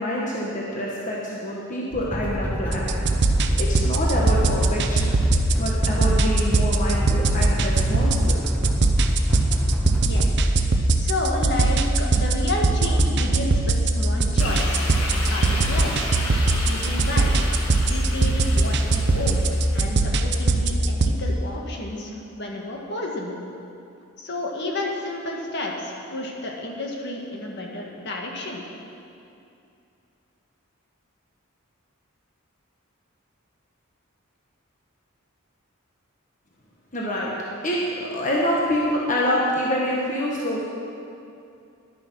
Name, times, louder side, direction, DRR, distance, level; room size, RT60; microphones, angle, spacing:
voice 1, 0.0-3.0 3.6-5.1 5.6-8.4 36.9-37.3 37.6-40.6, left 1 dB, 40° left, -4 dB, 1.3 m, -26 dB
sound 1, 1.9-10.2, equal, 5° left, 1.4 m, -28 dB
sound 2, 2.7-21.1, right 2 dB, 55° right, 0.7 m, -21 dB
voice 2, 10.0-10.3 10.9-16.1 16.6-17.3 17.9-19.5 19.7-23.4 24.2-28.6, left 2 dB, 55° left, 0 dB, 1.6 m, -31 dB
sound 3, 14.4-19.9, left 2 dB, 85° left, 1.9 m, -33 dB
11.0 x 9.6 x 6.2 m, 2.6 s
head